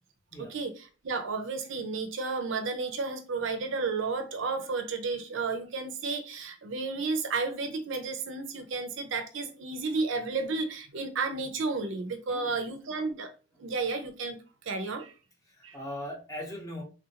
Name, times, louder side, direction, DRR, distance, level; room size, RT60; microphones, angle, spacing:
voice 1, 0.4-13.3 13.6-15.1 15.6-15.8, right 4 dB, 60° right, 0.5 m, -32 dB
voice 2, 15.6-16.8, left 1 dB, 15° left, 0.8 m, -39 dB
3.4 x 2.4 x 2.8 m
head